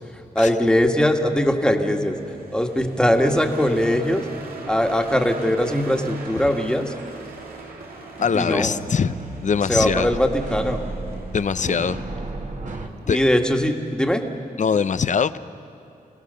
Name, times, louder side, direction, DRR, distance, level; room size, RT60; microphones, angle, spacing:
voice 1, 0.1-4.3 4.7-6.9 8.3-8.8 9.7-10.8 13.1-14.3, left 1 dB, 5° left, 4 dB, 1.7 m, -21 dB
sound 1, 2.1-12.4, right 3 dB, 90° right, 2.4 m, -39 dB
sound 2, 5.7-5.8 6.9-7.3 8.2-12.9, right 3 dB, 55° right, 2.0 m, -34 dB
voice 2, 8.2-9.1 9.4-10.1 11.3-12.0 13.1-13.2 14.6-15.4, left 6 dB, 55° left, 14 dB, 0.6 m, -22 dB
29.5 x 17.5 x 6.9 m, 2.7 s
cardioid pair, 75°, 15 cm